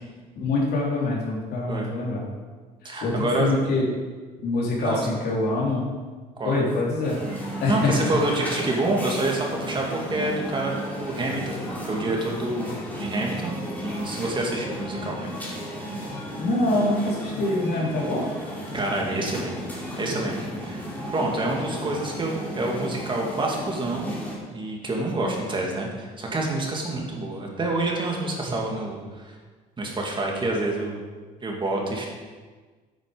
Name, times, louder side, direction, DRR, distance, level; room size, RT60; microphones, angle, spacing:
voice 1, 0.4-2.2 3.0-3.9 4.4-5.8 6.4-7.2 7.6-8.5 16.4-18.3, left 2 dB, 70° left, -4 dB, 3.6 m, -25 dB
voice 2, 2.8-3.5 4.8-5.0 6.4-6.6 7.7-11.6 11.8-15.3 18.7-19.5 20.0-20.9 21.1-24.2 24.5-29.3 29.8-31.0 31.4-32.1, right 2 dB, 30° right, -1 dB, 2.3 m, -27 dB
sound 1, 7.0-24.4, equal, 10° left, 3.3 m, -34 dB
9.0 x 8.9 x 5.2 m, 1.4 s
cardioid pair, 110°, 17 cm